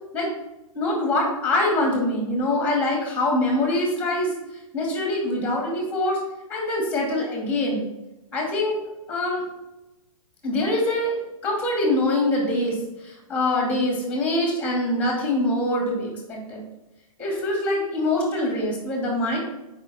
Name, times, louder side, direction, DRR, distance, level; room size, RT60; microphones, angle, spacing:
voice 1, 0.7-4.3 4.7-6.2 6.5-7.9 8.3-8.8 9.1-9.4 10.4-11.1 11.4-12.8 13.0-16.6 17.2-19.4, left 1 dB, 10° left, -1 dB, 2.2 m, -24 dB
6.7 x 5.1 x 4.3 m, 0.97 s
hypercardioid pair, 150°, 18 cm